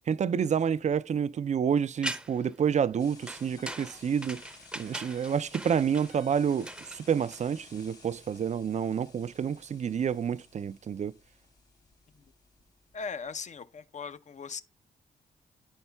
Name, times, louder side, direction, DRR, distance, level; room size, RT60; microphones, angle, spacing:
voice 1, 0.1-4.4 4.8-11.1, right 7 dB, 45° right, 0.4 m, -29 dB
sound 1, 2.0-2.5 3.3-7.8, right 1 dB, 5° right, 0.7 m, -40 dB
sound 2, 3.0-13.4, left 3 dB, 80° left, 2.2 m, -55 dB
voice 2, 12.9-14.6, left 5 dB, 45° left, 0.7 m, -39 dB
10.0 x 5.4 x 2.3 m
hypercardioid pair, 40°, 17 cm